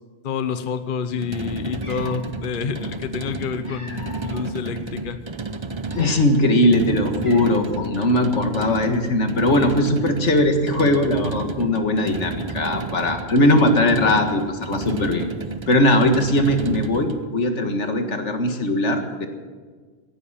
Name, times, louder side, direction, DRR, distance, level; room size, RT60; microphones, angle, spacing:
voice 1, 0.2-5.2, left 6 dB, 50° left, 10 dB, 1.0 m, -28 dB
sound 1, 1.1-17.3, right 3 dB, 30° right, 0.7 m, -32 dB
Cat, 1.3-1.4 1.7-2.3 3.2-4.4 5.0-5.2 5.7-6.5 6.8-6.9 7.2-7.8, left 1 dB, 25° left, 3.4 m, -42 dB
voice 2, 5.9-15.3 15.7-19.3, left 1 dB, 90° left, 6 dB, 2.1 m, -20 dB
17.0 x 10.5 x 7.4 m, 1.5 s
omnidirectional pair, 1.2 m